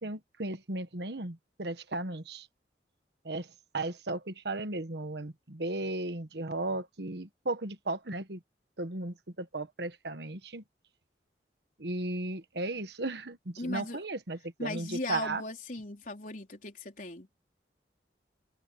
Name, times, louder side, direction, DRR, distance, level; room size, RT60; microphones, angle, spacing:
voice 1, 0.0-2.5 3.2-8.4 8.8-10.6 11.8-15.4, right 2 dB, 70° right, 1.4 m, -35 dB
voice 2, 13.6-14.0 14.6-17.3, left 2 dB, 50° left, 4.2 m, -38 dB
head